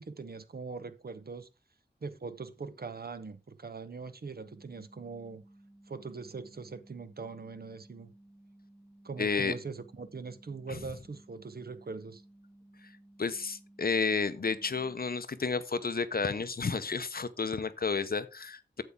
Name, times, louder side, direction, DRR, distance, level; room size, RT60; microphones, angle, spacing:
voice 1, 0.0-1.5 2.0-5.4 5.9-8.1 9.0-12.2, right 4 dB, 55° right, 0.8 m, -42 dB
sound 1, 4.4-15.0, right 1 dB, 90° right, 3.3 m, -58 dB
voice 2, 9.2-9.5 13.2-18.8, left 4 dB, 55° left, 0.7 m, -31 dB
8.0 x 7.3 x 3.6 m
wide cardioid pair, 70°, 19 cm